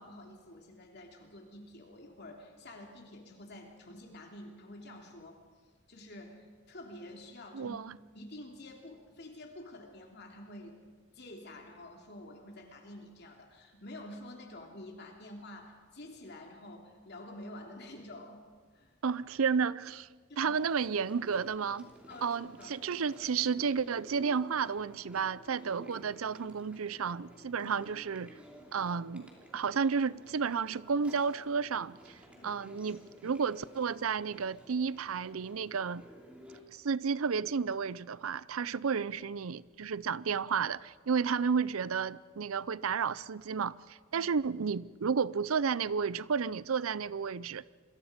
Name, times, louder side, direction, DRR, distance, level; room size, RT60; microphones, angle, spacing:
voice 1, 0.0-5.4 5.9-7.8 8.1-10.8 11.1-18.4 18.7-19.0 20.3-20.6 22.1-22.7 27.5-27.7 32.3-32.6 44.1-44.3, left 1 dB, 55° left, 3.0 m, -49 dB
voice 2, 7.5-7.9 19.0-20.1 20.4-21.9 22.2-28.3 28.7-32.2 32.4-36.1 36.7-47.6, right 6 dB, 85° right, 0.6 m, -32 dB
Chewing mastication, 20.5-36.6, equal, 5° right, 3.0 m, -54 dB
28.0 x 22.0 x 5.2 m
head